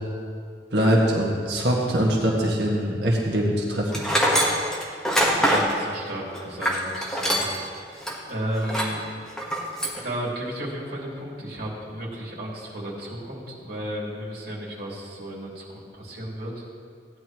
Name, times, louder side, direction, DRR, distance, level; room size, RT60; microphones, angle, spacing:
voice 1, 0.7-4.0, equal, 70° right, -2 dB, 1.7 m, -22 dB
Tools, 3.9-7.7 8.0-8.1 8.6-9.0 9.4-10.0, equal, 5° left, 1.4 m, -23 dB
voice 2, 5.3-7.5 8.2-9.0 9.9-16.5, right 1 dB, 55° right, -5 dB, 3.0 m, -33 dB
16.5 x 10.0 x 3.1 m, 2.2 s
head